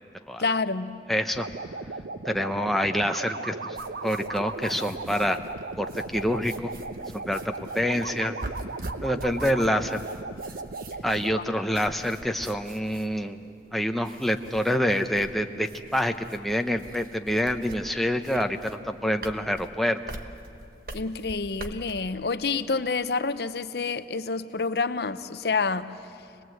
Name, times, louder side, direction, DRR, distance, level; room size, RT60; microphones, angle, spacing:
voice 1, 0.4-1.0 11.3-11.4 20.9-25.9, left 4 dB, 65° left, 12 dB, 0.7 m, -28 dB
voice 2, 1.1-1.5 2.3-3.8 4.0-5.4 5.8-6.7 7.1-8.3 9.0-10.0 11.0-13.5 13.7-20.0, equal, ahead, 5 dB, 0.7 m, -27 dB
sound 1, 1.3-11.4, right 3 dB, 90° right, 0.8 m, -37 dB
sound 2, 3.7-22.0, right 2 dB, 55° right, 1.1 m, -44 dB
26.0 x 19.5 x 7.8 m, 2.5 s
head